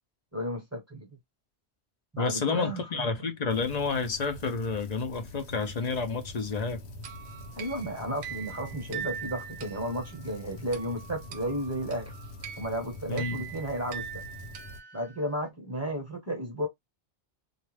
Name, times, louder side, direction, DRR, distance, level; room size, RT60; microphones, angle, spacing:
voice 1, 0.3-1.1 2.1-3.1 7.6-12.1 12.6-14.2 14.9-16.7, right 1 dB, 15° right, 0.8 m, -33 dB
voice 2, 2.2-6.8 13.1-13.4, left 4 dB, 50° left, 0.6 m, -30 dB
sound 1, 3.5-14.8, left 1 dB, 75° left, 1.1 m, -45 dB
sound 2, 7.0-15.4, right 8 dB, 60° right, 0.7 m, -42 dB
2.4 x 2.2 x 3.1 m
omnidirectional pair, 1.1 m